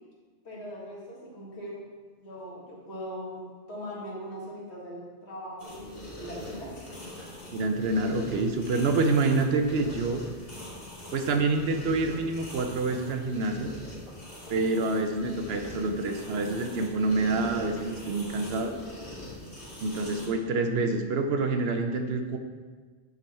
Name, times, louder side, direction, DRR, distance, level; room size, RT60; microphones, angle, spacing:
voice 1, 0.4-1.9 2.2-6.9, equal, 70° left, -5 dB, 2.1 m, -40 dB
sound 1, 5.6-20.3, left 1 dB, 30° left, 2.0 m, -42 dB
voice 2, 7.5-10.2 11.1-13.7 14.5-18.8 19.8-22.4, right 3 dB, 65° right, 6 dB, 0.9 m, -27 dB
9.7 x 4.0 x 4.2 m, 1.4 s
omnidirectional pair, 1.2 m